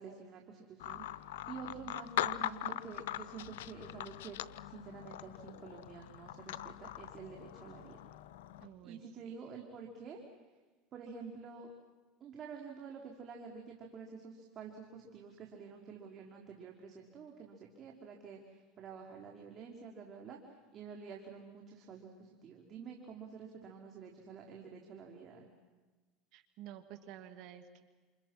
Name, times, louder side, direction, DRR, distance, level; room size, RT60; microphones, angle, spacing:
voice 1, 0.0-4.4 4.7-8.0 8.8-10.2 10.9-11.7 12.2-20.4 20.7-25.5, right 6 dB, 45° right, 1 dB, 3.6 m, -49 dB
sound 1, 0.8-8.7, left 13 dB, 85° left, 0.7 m, -41 dB
voice 2, 8.6-9.0 9.3-9.4 26.3-27.8, right 11 dB, 65° right, 7 dB, 2.4 m, -51 dB
28.5 x 28.0 x 6.1 m, 1.3 s
supercardioid pair, 105°, 0 cm